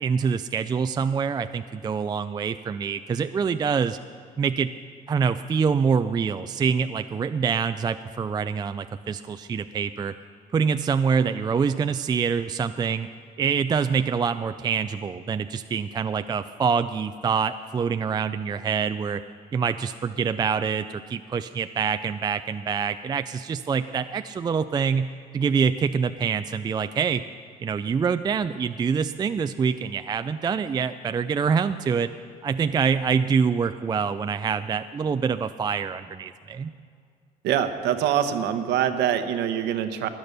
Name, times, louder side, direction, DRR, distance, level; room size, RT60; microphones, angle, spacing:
voice 1, 0.0-4.0 4.4-4.7 5.1-10.1 10.5-13.1 13.4-19.2 19.5-27.2 27.6-32.1 32.4-36.7, right 6 dB, 25° right, 10 dB, 0.3 m, -25 dB
voice 2, 37.4-40.1, right 9 dB, 85° right, 9 dB, 1.0 m, -24 dB
16.5 x 10.5 x 6.7 m, 2.3 s
cardioid pair, 110°, 17 cm